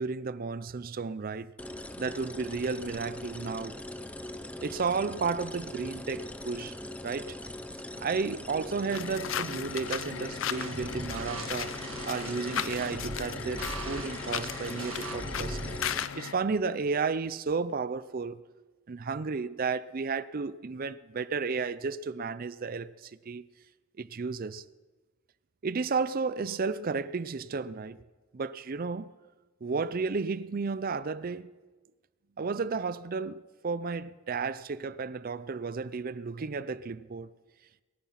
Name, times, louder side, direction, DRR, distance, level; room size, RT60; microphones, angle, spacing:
voice 1, 0.0-1.5 2.0-3.8 4.6-6.7 7.0-7.4 8.0-11.8 12.0-18.4 18.9-23.5 24.0-24.6 25.6-28.0 28.3-29.1 29.6-31.5 32.4-37.3, right 4 dB, 40° right, 0.5 m, -33 dB
sound 1, 1.6-16.0, left 1 dB, 5° left, 0.5 m, -41 dB
sound 2, 8.9-16.3, left 8 dB, 60° left, 0.6 m, -36 dB
sound 3, 10.5-15.8, right 2 dB, 70° right, 1.8 m, -41 dB
22.5 x 9.6 x 5.8 m
head